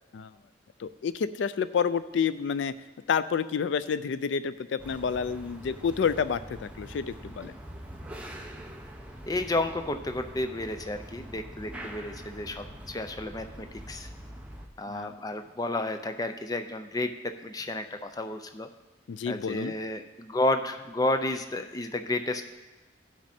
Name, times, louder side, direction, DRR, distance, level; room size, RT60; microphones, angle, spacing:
voice 1, 0.8-2.7 3.1-7.5 14.9-15.2 19.1-19.7, left 6 dB, 75° left, 14 dB, 0.3 m, -29 dB
sound 1, 4.8-14.7, right 1 dB, 5° right, 0.8 m, -44 dB
voice 2, 9.3-14.1 14.8-18.7 19.3-22.4, left 2 dB, 20° left, 7 dB, 0.5 m, -31 dB
16.0 x 6.1 x 4.3 m, 1.1 s
head